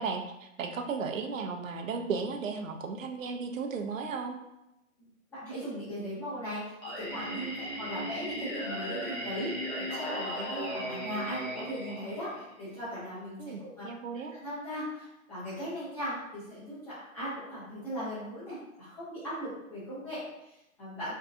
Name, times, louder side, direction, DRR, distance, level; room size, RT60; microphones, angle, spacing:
voice 1, 0.0-4.4 13.4-14.3, right 5 dB, 70° right, 4 dB, 0.5 m, -35 dB
voice 2, 5.0-13.8 14.3-21.2, equal, 5° left, -13 dB, 0.7 m, -38 dB
Singing, 6.8-12.8, equal, 40° left, 1.1 m, -37 dB
2.6 x 2.2 x 2.4 m, 0.90 s
hypercardioid pair, 150°, 41 cm